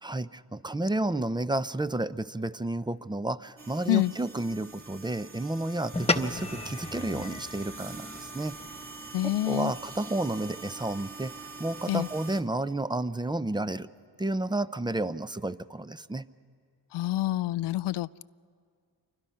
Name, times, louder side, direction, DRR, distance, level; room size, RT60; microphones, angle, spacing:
voice 1, 0.0-8.6 9.2-11.3 11.6-13.9 14.2-16.3, right 2 dB, 10° right, 14 dB, 0.5 m, -31 dB
sound 1, 3.6-12.4, right 4 dB, 30° right, 2.6 m, -44 dB
sound 2, 5.9-10.6, left 2 dB, 15° left, 1.1 m, -35 dB
voice 2, 9.1-9.7 11.9-12.1 16.9-18.2, left 15 dB, 70° left, 18 dB, 0.5 m, -27 dB
28.5 x 24.0 x 5.7 m, 2.1 s
cardioid pair, 70°, 43 cm